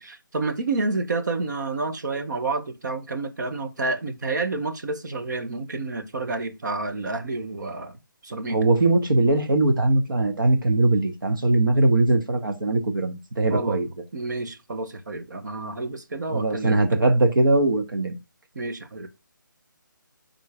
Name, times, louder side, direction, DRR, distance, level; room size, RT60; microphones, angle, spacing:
voice 1, 0.0-7.9 8.2-8.6 13.5-13.8 14.1-16.8 18.5-19.1, right 3 dB, 60° right, 1.2 m, -29 dB
voice 2, 8.5-13.9 16.3-18.1, right 2 dB, 75° right, 1.6 m, -21 dB
9.6 x 3.9 x 3.6 m
figure-of-eight pair, 160°, 11 cm